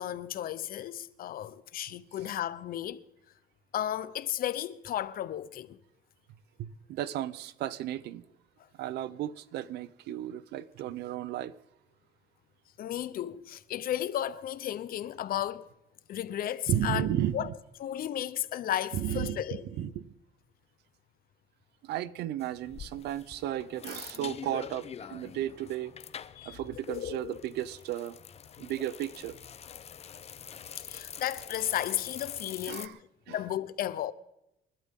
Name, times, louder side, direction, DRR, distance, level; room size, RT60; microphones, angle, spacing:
voice 1, 0.0-3.0 3.7-5.8 12.8-15.7 16.1-17.1 17.3-17.5 17.8-19.6 26.4-27.4 30.8-33.0 33.3-34.1, left 11 dB, 60° left, 0.9 m, -34 dB
voice 2, 6.6-8.2 8.8-11.5 16.7-17.5 18.9-20.1 21.8-25.9 26.4-28.2 28.6-29.4 32.7-33.0 33.3-33.4, right 12 dB, 80° right, 0.8 m, -34 dB
sound 1, 22.4-32.9, left 8 dB, 40° left, 0.7 m, -45 dB
28.0 x 12.0 x 3.8 m
cardioid pair, 110°, 17 cm